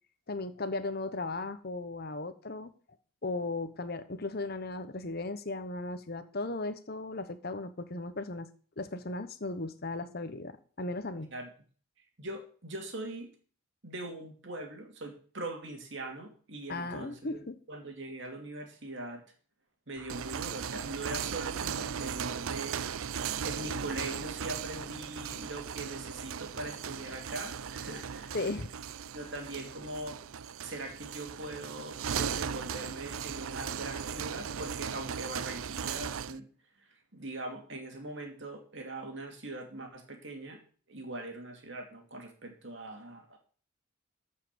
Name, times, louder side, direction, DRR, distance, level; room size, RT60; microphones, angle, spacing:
voice 1, 0.3-2.7 3.2-8.5 8.8-11.3 16.7-17.6 28.3-28.7, left 2 dB, 45° left, 11 dB, 1.0 m, -36 dB
voice 2, 12.2-13.3 13.8-19.2 19.9-22.8 23.4-28.4 29.1-30.2 30.6-36.5 37.1-40.6 40.9-43.4, right 2 dB, 55° right, 4 dB, 2.6 m, -41 dB
sound 1, 20.0-36.4, right 7 dB, 70° right, 0.5 m, -37 dB
14.0 x 5.7 x 6.9 m, 0.42 s
head